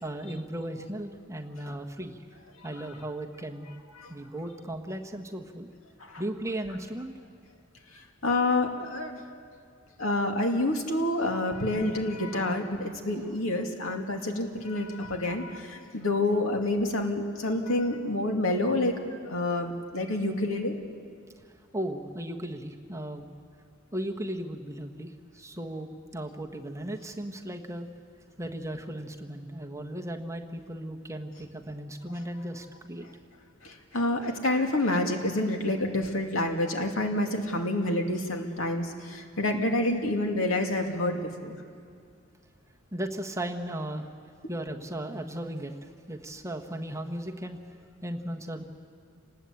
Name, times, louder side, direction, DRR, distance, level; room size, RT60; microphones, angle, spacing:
voice 1, 0.0-2.2 2.6-5.7 6.2-7.1 21.7-23.3 23.9-27.9 28.4-33.0 42.9-44.1 44.5-47.7 48.0-48.6, right 1 dB, 15° right, 2 dB, 1.4 m, -36 dB
voice 2, 8.2-9.2 10.0-20.7 33.6-41.6, left 1 dB, 80° left, 3 dB, 2.5 m, -28 dB
27.5 x 19.5 x 8.5 m, 2.2 s
head